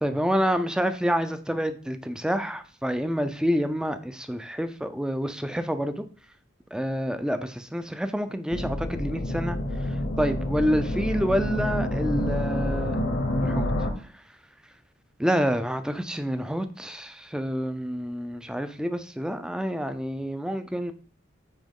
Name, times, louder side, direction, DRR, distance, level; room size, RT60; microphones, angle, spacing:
voice 1, 0.0-6.0 6.7-9.6 10.2-13.0 13.4-13.7 15.2-20.9, equal, 5° right, 9 dB, 0.4 m, -28 dB
sound 1, 8.5-13.9, left 1 dB, 60° left, 0.9 m, -28 dB
8.8 x 3.0 x 3.7 m, 0.41 s
head